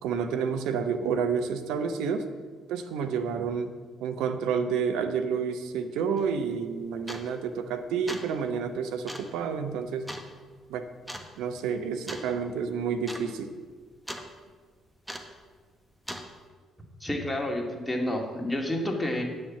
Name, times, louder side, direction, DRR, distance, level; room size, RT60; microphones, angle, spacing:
voice 1, 0.0-2.3 2.7-3.7 4.0-10.1 10.7-10.8 11.4-13.5, right 6 dB, 70° right, 8 dB, 0.8 m, -29 dB
sound 1, 6.2-6.3 7.1-7.4 7.9-8.4 9.1-9.3 10.1-10.3 11.1-11.3 12.1-12.3 12.6-12.7 13.0-13.3 13.5-14.3 15.1-15.4 16.1-16.3, equal, 5° right, 1.4 m, -39 dB
voice 2, 17.0-19.2, left 1 dB, 15° left, 1 dB, 2.3 m, -29 dB
9.4 x 6.5 x 7.2 m, 1.5 s
hypercardioid pair, 45°, 0 cm